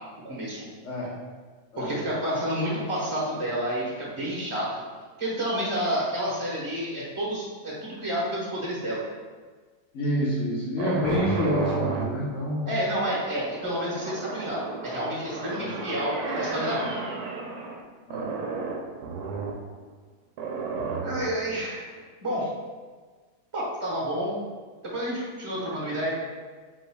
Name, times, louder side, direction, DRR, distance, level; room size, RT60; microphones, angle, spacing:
voice 1, 0.2-0.7 1.8-4.8 5.2-9.0 12.7-17.0 21.0-21.9 22.2-22.5 23.5-24.4 24.8-26.2, equal, 20° right, -6 dB, 1.0 m, -29 dB
voice 2, 9.9-12.7 15.5-15.8 18.1-18.4, equal, 50° left, -6 dB, 1.3 m, -27 dB
sound 1, 10.8-17.8 18.1-19.6 20.4-21.5, right 4 dB, 75° right, 1.1 m, -33 dB
5.0 x 3.9 x 2.3 m, 1.4 s
omnidirectional pair, 1.8 m